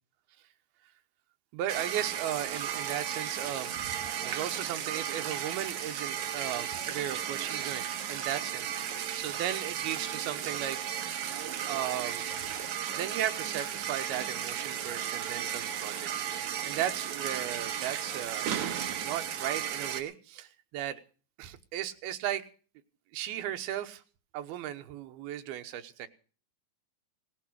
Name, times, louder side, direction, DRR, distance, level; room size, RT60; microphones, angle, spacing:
voice 1, 1.5-7.8 8.1-10.8 11.7-12.5 12.9-16.1 16.6-18.5 19.0-21.0 21.4-22.4 23.1-24.0 24.3-26.1, right 11 dB, 85° right, 8 dB, 3.0 m, -36 dB
sound 1, 1.7-20.0, right 9 dB, 60° right, 2.4 m, -35 dB
18.0 x 11.0 x 6.2 m, 0.40 s
omnidirectional pair, 4.4 m